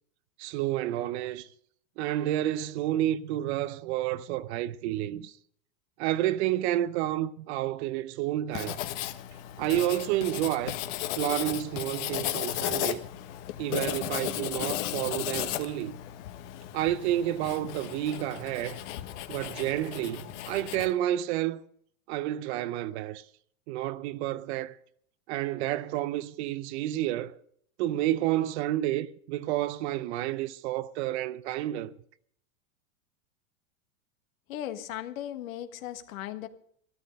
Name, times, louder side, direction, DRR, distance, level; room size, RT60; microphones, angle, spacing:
voice 1, 0.4-1.5 2.0-5.3 6.0-8.8 9.6-10.8 11.2-13.0 13.6-16.0 16.7-18.8 19.3-21.7 22.1-23.2 23.7-24.8 25.3-27.4 27.8-31.9, right 13 dB, 50° right, 0.7 m, -30 dB
Writing, 8.5-20.9, left 13 dB, 55° left, 1.2 m, -35 dB
voice 2, 34.5-36.5, left 12 dB, 75° left, 1.5 m, -37 dB
13.5 x 13.0 x 5.2 m
supercardioid pair, 140°, 41 cm